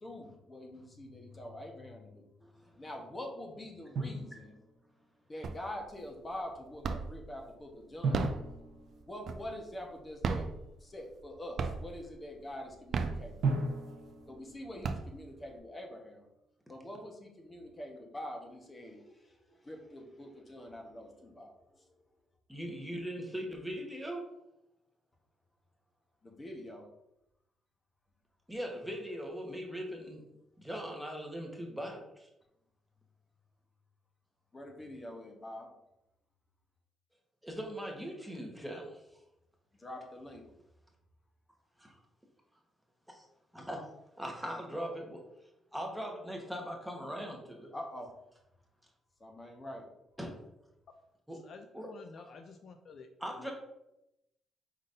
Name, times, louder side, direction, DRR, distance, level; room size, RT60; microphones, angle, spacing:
voice 1, 0.0-2.3 2.8-4.5 5.3-8.3 9.0-10.5 10.8-13.7 14.3-16.2 16.7-21.8 26.2-26.8 34.5-35.7 39.8-40.5 47.7-48.1 49.2-49.8, left 1 dB, 25° left, 2 dB, 1.1 m, -45 dB
Drum, 4.0-5.0 8.0-9.9 13.4-15.4, right 3 dB, 80° right, 0.9 m, -37 dB
sound 1, 5.4-5.9 6.3-7.3 7.9-9.7 10.1-11.3 11.6-12.1 12.7-13.8 14.3-14.4 14.6-15.5, right 5 dB, 60° right, 0.4 m, -35 dB
voice 2, 22.5-24.2 28.5-30.2 30.6-32.3 37.4-39.0 41.8-42.0 43.1-43.2 43.5-43.8 44.2-45.2 45.7-47.7 50.2-50.3 51.3-51.4 51.7-51.9 53.2-53.5, equal, ahead, 0 dB, 1.1 m, -40 dB
voice 3, 51.3-53.1 53.4-53.5, left 5 dB, 60° left, 6 dB, 0.4 m, -51 dB
5.2 x 3.9 x 2.6 m, 0.86 s
cardioid pair, 90°, 0 cm